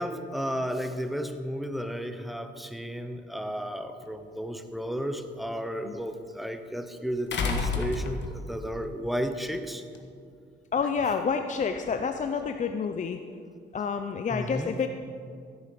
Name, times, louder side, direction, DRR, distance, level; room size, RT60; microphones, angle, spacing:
voice 1, 0.0-9.8 14.3-14.8, equal, ahead, 8 dB, 0.9 m, -33 dB
sound 1, 4.0-4.1 7.3-8.6 9.9-10.0, left 4 dB, 65° left, 1.4 m, -29 dB
voice 2, 10.7-13.2 13.7-14.9, left 6 dB, 40° left, 6 dB, 0.6 m, -29 dB
15.0 x 8.8 x 5.2 m, 2.3 s
cardioid pair, 90°, 20 cm